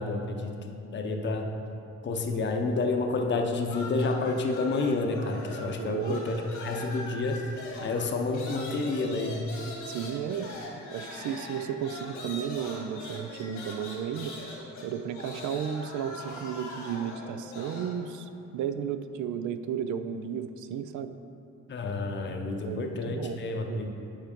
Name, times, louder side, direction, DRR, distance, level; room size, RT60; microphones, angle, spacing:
voice 1, 0.0-1.5 2.0-7.5 7.8-9.5 21.7-23.9, left 3 dB, 40° left, 3 dB, 0.7 m, -29 dB
sound 1, 3.6-5.8 6.0-18.0, left 2 dB, 80° left, 1.7 m, -42 dB
voice 2, 5.8-6.2 9.9-10.5 10.9-14.3 14.8-21.1 22.6-23.4 23.7-23.9, right 8 dB, 75° right, 10 dB, 0.5 m, -33 dB
7.2 x 4.6 x 5.2 m, 2.8 s
cardioid pair, 90°, 30 cm